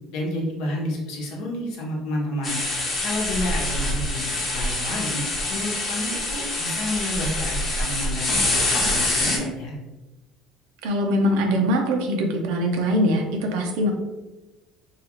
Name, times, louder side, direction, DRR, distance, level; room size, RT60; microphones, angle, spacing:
voice 1, 0.1-2.6 3.0-4.2 4.5-5.2 5.5-9.7, left 1 dB, 80° left, -2 dB, 0.8 m, -30 dB
sound 1, 2.4-9.4, left 2 dB, 35° left, 0.8 m, -25 dB
voice 2, 10.8-13.9, equal, 90° right, 2 dB, 0.5 m, -22 dB
2.8 x 2.4 x 2.9 m, 1.1 s
cardioid pair, 135°, 0 cm